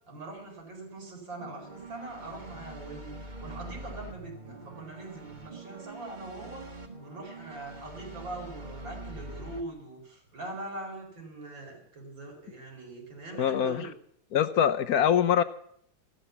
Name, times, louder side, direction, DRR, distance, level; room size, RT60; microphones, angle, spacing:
voice 1, 0.1-13.9, right 2 dB, 75° right, 0 dB, 5.3 m, -42 dB
sound 1, 1.4-9.6, right 2 dB, 25° right, 1.7 m, -44 dB
voice 2, 13.4-13.9 14.3-15.4, left 9 dB, 60° left, 11 dB, 1.1 m, -24 dB
15.0 x 12.5 x 7.1 m, 0.67 s
omnidirectional pair, 2.1 m